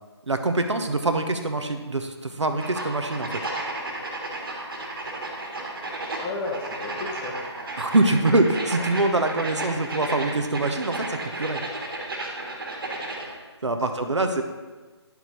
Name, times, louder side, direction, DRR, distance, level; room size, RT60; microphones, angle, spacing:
voice 1, 0.3-3.3 7.8-11.6 13.6-14.4, right 2 dB, 85° right, 6 dB, 0.9 m, -24 dB
sound 1, 2.6-13.3, right 2 dB, 50° right, 1.7 m, -33 dB
voice 2, 6.2-7.6 13.6-14.4, left 3 dB, 10° left, -1 dB, 0.5 m, -34 dB
10.5 x 4.7 x 3.9 m, 1.3 s
figure-of-eight pair, 155°, 15 cm